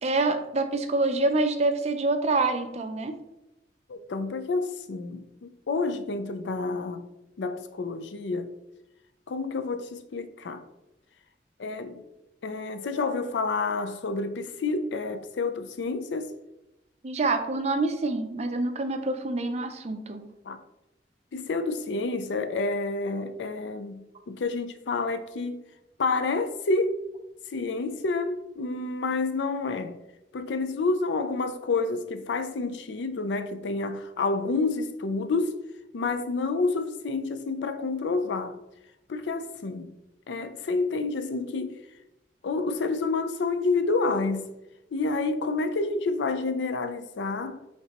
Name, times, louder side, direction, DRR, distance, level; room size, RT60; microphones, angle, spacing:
voice 1, 0.0-3.1 17.0-20.2, right 2 dB, 40° right, 0.5 m, -26 dB
voice 2, 3.9-7.0 7.4-8.5 9.3-10.6 11.6-12.0 12.4-16.3 20.4-20.6 21.3-25.6 26.0-27.0 27.5-30.0 30.3-35.6 35.9-38.6 39.1-40.0 40.3-41.8 42.4-44.5 44.9-47.6, left 3 dB, 90° left, 0.4 m, -29 dB
5.6 x 3.3 x 2.9 m
head